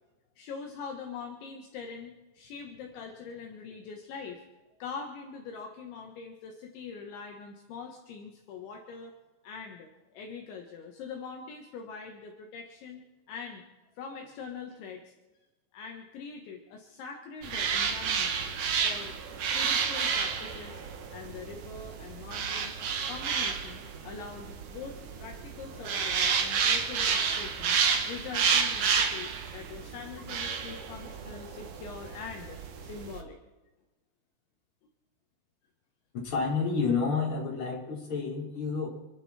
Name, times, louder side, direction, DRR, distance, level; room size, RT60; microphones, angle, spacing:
voice 1, 0.4-4.4 4.8-9.2 9.4-13.7 14.0-15.0 15.7-18.4 18.8-20.8 21.1-22.8 23.1-27.8 28.1-33.4, left 5 dB, 70° left, 2 dB, 3.6 m, -43 dB
sound 1, 17.4-33.2, right 6 dB, 75° right, 1.8 m, -30 dB
voice 2, 36.2-38.9, left 5 dB, 25° left, -3 dB, 4.4 m, -29 dB
27.0 x 11.5 x 4.4 m, 1.1 s
omnidirectional pair, 5.8 m